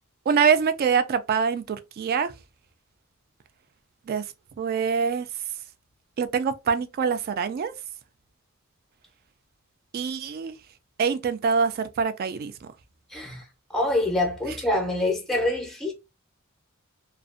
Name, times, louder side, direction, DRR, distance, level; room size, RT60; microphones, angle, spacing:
voice 1, 0.3-2.3 4.1-4.2 4.6-5.3 6.2-7.7 9.9-10.6 11.0-12.7 14.5-14.6, right 6 dB, 45° right, 0.3 m, -24 dB
voice 2, 13.7-15.9, left 1 dB, ahead, 0.6 m, -25 dB
2.5 x 2.1 x 2.4 m
head